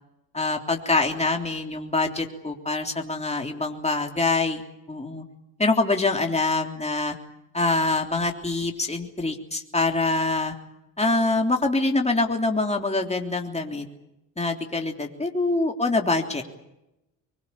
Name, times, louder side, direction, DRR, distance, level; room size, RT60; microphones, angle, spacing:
voice 1, 0.3-5.2 5.6-7.2 7.5-10.5 11.0-13.9 14.4-16.4, left 2 dB, 15° left, 2 dB, 3.4 m, -25 dB
24.0 x 21.5 x 8.7 m, 0.91 s
supercardioid pair, 65°, 50 cm